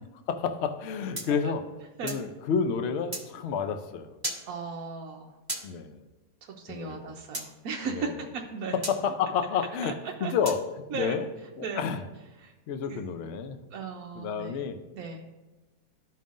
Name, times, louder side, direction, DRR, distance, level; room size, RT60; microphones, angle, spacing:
voice 1, 0.3-1.6 2.0-4.1 5.6-6.0 6.7-7.1 7.9-8.1 8.7-9.9 10.2-10.6 10.9-11.2 11.6-12.0 12.7-13.6 14.2-14.8, left 6 dB, 80° left, 8 dB, 0.6 m, -30 dB
sound 1, 1.1-2.3 3.1-3.3 4.2-4.4 5.5-5.7 7.3-7.5 8.8-9.0 10.4-10.6, right 1 dB, 20° right, 0.7 m, -35 dB
voice 2, 4.5-5.4 6.4-8.8 9.8-10.3 10.9-11.2 11.6-11.8 12.4-12.5 12.9-13.0 13.7-14.6 14.9-15.2, right 5 dB, 65° right, 1 dB, 0.9 m, -36 dB
13.5 x 5.3 x 2.5 m, 1.1 s
omnidirectional pair, 1.9 m